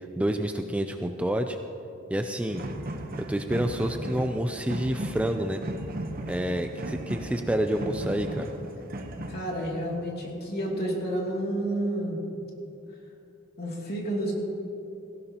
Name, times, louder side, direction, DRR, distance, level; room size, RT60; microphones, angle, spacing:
voice 1, 0.2-1.6 2.1-2.6 3.2-5.6 6.3-8.5, right 1 dB, 5° right, 6 dB, 0.4 m, -28 dB
sound 1, 2.5-9.4, right 1 dB, 45° right, 0.9 m, -36 dB
voice 2, 9.3-12.2 13.6-14.3, right 1 dB, 50° left, -2 dB, 2.7 m, -30 dB
17.0 x 17.0 x 2.9 m, 2.8 s
head